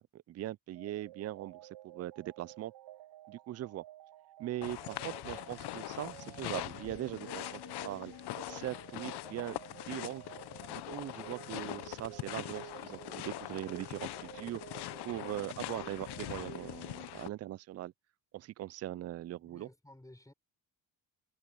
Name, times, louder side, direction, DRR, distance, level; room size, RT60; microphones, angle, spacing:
voice 1, 0.1-1.6 1.8-2.7 3.3-3.8 4.4-8.1 8.5-10.2 10.7-14.6 15.0-17.9 18.3-19.7, right 14 dB, 40° right, 0.4 m, -41 dB
sound 1, 0.8-17.4, right 17 dB, 75° right, 1.0 m, -52 dB
sound 2, 4.6-17.3, left 16 dB, 65° left, 0.8 m, -43 dB
voice 2, 19.3-20.3, left 1 dB, 10° left, 5.8 m, -56 dB
supercardioid pair, 75°, 43 cm